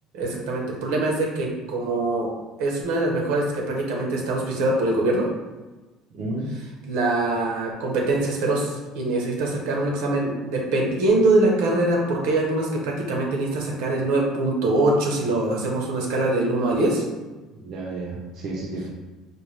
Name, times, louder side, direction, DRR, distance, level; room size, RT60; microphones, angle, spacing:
voice 1, 0.1-2.3 2.6-5.3 6.9-17.0, right 2 dB, 90° right, -1 dB, 1.0 m, -23 dB
voice 2, 6.1-6.5 17.5-18.9, right 2 dB, 45° right, -3 dB, 0.6 m, -32 dB
4.4 x 2.3 x 3.2 m, 1.2 s
cardioid pair, 180°, 0 cm